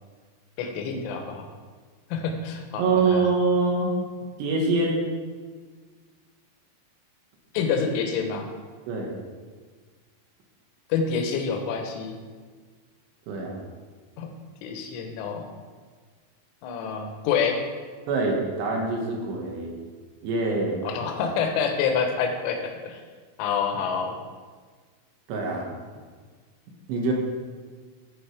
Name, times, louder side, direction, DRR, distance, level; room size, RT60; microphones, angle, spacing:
voice 1, 0.6-1.5 2.1-3.3 7.5-8.5 10.9-12.2 14.2-14.3 14.6-15.5 16.6-17.6 20.8-23.0 23.4-24.2, left 6 dB, 80° left, 4 dB, 3.4 m, -27 dB
voice 2, 2.8-3.9 4.4-5.0 8.9-9.1 13.3-13.6 18.1-19.8 20.2-20.8 25.3-25.7 26.9-27.1, right 3 dB, 70° right, -1 dB, 3.2 m, -24 dB
14.5 x 5.1 x 4.8 m, 1.5 s
omnidirectional pair, 5.9 m